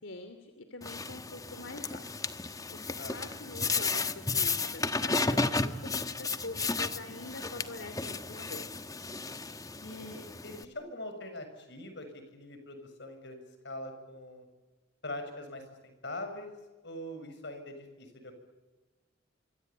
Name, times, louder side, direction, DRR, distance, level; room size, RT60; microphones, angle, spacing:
voice 1, 0.0-8.7, left 2 dB, 85° left, 7 dB, 2.7 m, -45 dB
sound 1, 0.8-10.6, left 3 dB, 20° left, 1.2 m, -33 dB
voice 2, 9.8-14.5 15.0-16.5 16.8-18.3, left 1 dB, 60° left, 7 dB, 6.8 m, -43 dB
26.0 x 25.5 x 8.7 m, 1.2 s
head